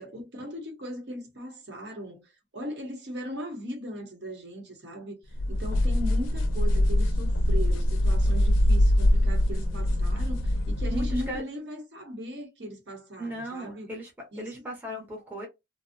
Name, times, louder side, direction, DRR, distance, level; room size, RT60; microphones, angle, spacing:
voice 1, 0.0-2.3 2.5-13.9 14.3-14.6, equal, 60° right, 0.9 m, -38 dB
sound 1, 5.4-11.4, left 1 dB, 80° left, 0.4 m, -23 dB
voice 2, 10.9-11.4 13.2-14.1 14.4-15.5, equal, 10° right, 0.6 m, -37 dB
2.5 x 2.0 x 2.5 m
head